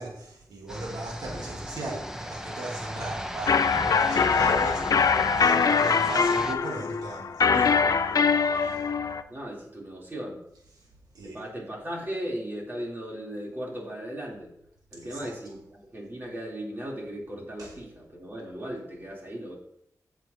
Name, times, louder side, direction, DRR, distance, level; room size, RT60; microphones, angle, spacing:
voice 1, 0.0-8.8 10.8-10.9 11.1-11.4 15.0-15.3 17.6-17.7, right 2 dB, 80° right, -2 dB, 1.6 m, -38 dB
sound 1, 0.7-6.5, equal, 10° right, 0.9 m, -36 dB
sound 2, 3.5-9.2, left 5 dB, 70° left, 0.5 m, -23 dB
voice 2, 9.3-10.4 11.2-14.5 14.9-19.6, equal, 35° right, -4 dB, 3.3 m, -37 dB
15.0 x 6.3 x 2.8 m, 0.76 s
wide cardioid pair, 125°, 6 cm